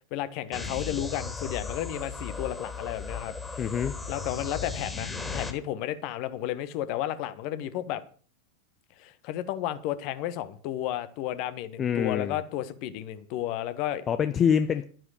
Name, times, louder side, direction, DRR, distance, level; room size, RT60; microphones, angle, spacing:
voice 1, 0.1-3.3 4.1-8.0 9.0-14.0, left 12 dB, 45° left, 1.4 m, -32 dB
sound 1, 0.5-5.5, left 4 dB, 10° left, 2.8 m, -36 dB
voice 2, 3.6-4.0 11.8-12.4 14.1-14.8, left 7 dB, 25° left, 0.7 m, -25 dB
12.0 x 10.5 x 6.6 m
figure-of-eight pair, 90°, 0 cm